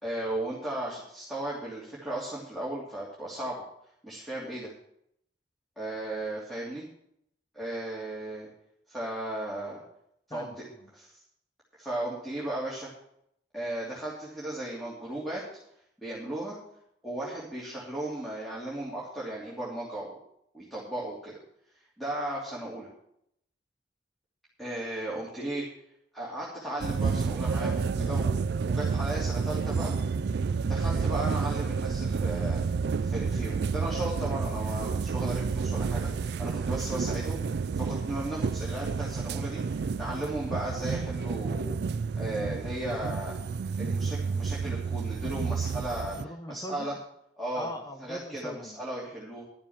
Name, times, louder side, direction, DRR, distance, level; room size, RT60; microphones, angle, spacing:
voice 1, 0.0-3.6 4.0-4.7 5.8-6.8 7.5-8.5 8.9-9.8 10.3-10.5 10.9-11.1 11.8-12.9 13.5-15.4 16.0-16.6 17.0-20.1 20.5-21.3 22.0-22.9 24.6-25.6 26.1-29.9 30.7-32.6 33.0-41.7 42.2-43.4 43.8-46.2 46.5-46.9 47.4-47.7 48.0-49.4, right 1 dB, ahead, -7 dB, 2.9 m, -35 dB
voice 2, 10.3-10.9 28.0-28.4 46.2-47.0 47.5-48.8, left 1 dB, 20° left, 7 dB, 1.0 m, -41 dB
sound 1, 26.8-46.2, right 5 dB, 60° right, 0.4 m, -30 dB
12.0 x 7.2 x 7.3 m, 0.72 s
head